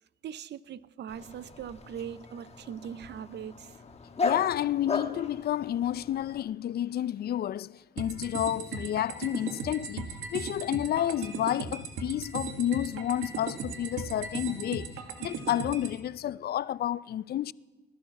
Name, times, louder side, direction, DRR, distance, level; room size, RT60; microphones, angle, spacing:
voice 1, 0.2-3.8, right 9 dB, 60° right, 0.6 m, -41 dB
Dog, 1.1-6.4, left 4 dB, 30° left, 1.2 m, -36 dB
voice 2, 4.2-14.9 15.2-17.5, left 12 dB, 55° left, 0.4 m, -30 dB
sound 1, 8.0-16.0, right 5 dB, 85° right, 1.7 m, -37 dB
19.0 x 12.0 x 5.9 m
cardioid pair, 90°, 20 cm